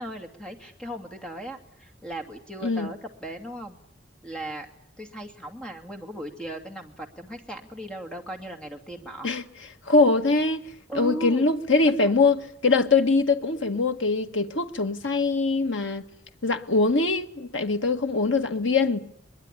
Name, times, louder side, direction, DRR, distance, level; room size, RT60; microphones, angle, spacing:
voice 1, 0.0-3.8 4.2-4.7 5.0-9.3 10.9-11.5 12.0-12.2, right 1 dB, 5° left, 2.5 m, -37 dB
voice 2, 9.9-10.6 11.0-16.0 16.4-19.0, left 3 dB, 75° left, 1.6 m, -22 dB
22.5 x 21.5 x 10.0 m
head